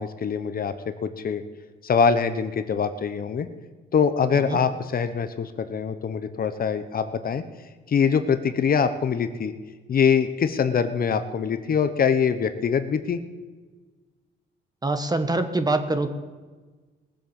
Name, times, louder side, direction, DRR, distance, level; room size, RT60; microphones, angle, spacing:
voice 1, 0.0-1.4 1.8-3.5 3.9-7.4 7.9-9.5 9.9-13.2, left 6 dB, 45° left, 10 dB, 0.9 m, -23 dB
voice 2, 14.8-16.1, right 2 dB, 20° right, 8 dB, 1.3 m, -24 dB
18.5 x 7.8 x 7.0 m, 1.4 s
cardioid pair, 90°, 20 cm